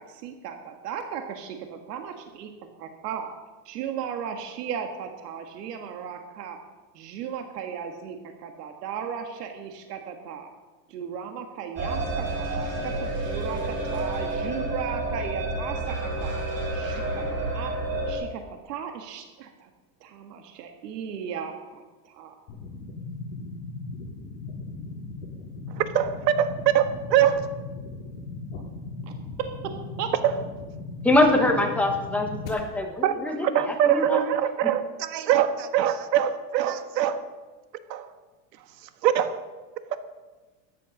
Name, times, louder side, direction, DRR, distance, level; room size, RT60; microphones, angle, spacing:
voice 1, 0.0-2.5 2.8-3.3 3.7-6.6 6.9-10.5 10.9-16.4 16.7-17.7 18.1-19.7 20.0-22.4 29.0-29.1 30.0-30.1, right 7 dB, 70° right, 5 dB, 1.8 m, -36 dB
sound 1, 11.8-18.1, right 2 dB, 25° right, 4.0 m, -29 dB
sound 2, 22.5-32.5, left 3 dB, 55° left, 6.1 m, -38 dB
voice 2, 25.8-27.5 30.2-30.3 33.0-37.3 37.9-38.1 39.0-39.4 39.9-40.0, right 10 dB, 85° right, 10 dB, 1.6 m, -23 dB
voice 3, 31.0-33.5 33.9-34.2, left 1 dB, 5° left, 2 dB, 1.0 m, -23 dB
13.5 x 10.5 x 6.4 m, 1.2 s
supercardioid pair, 175°, 49 cm